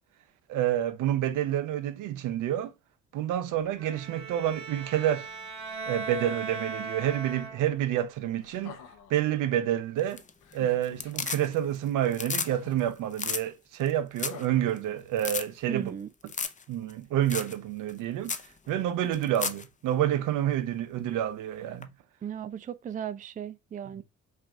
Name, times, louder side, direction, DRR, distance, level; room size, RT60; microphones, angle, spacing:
voice 1, 0.5-2.7 3.1-5.3 5.9-8.8 9.1-10.2 10.5-15.9 16.7-18.3 18.7-21.9 24.0-24.1, right 11 dB, 85° right, 0.7 m, -28 dB
Bowed string instrument, 3.8-7.9, right 4 dB, 65° right, 1.8 m, -38 dB
sound 1, 8.4-9.2 10.4-11.3 12.4-13.1 14.2-15.3 16.4-16.5, left 7 dB, 85° left, 0.9 m, -49 dB
sound 2, 10.0-10.5 10.8-11.8 12.0-12.5 12.8-12.9 13.1-13.4 13.9-14.0 14.2-14.4 14.8-14.9 15.2-15.4 16.3-16.6 16.9-17.0 17.3-17.5 17.9-18.0 18.2-18.5 19.1-19.6 21.8-21.9, left 5 dB, 25° left, 0.6 m, -33 dB
voice 2, 15.7-16.1 22.2-24.0, right 9 dB, 25° right, 0.4 m, -36 dB
5.6 x 2.5 x 3.7 m
cardioid pair, 80°, 30 cm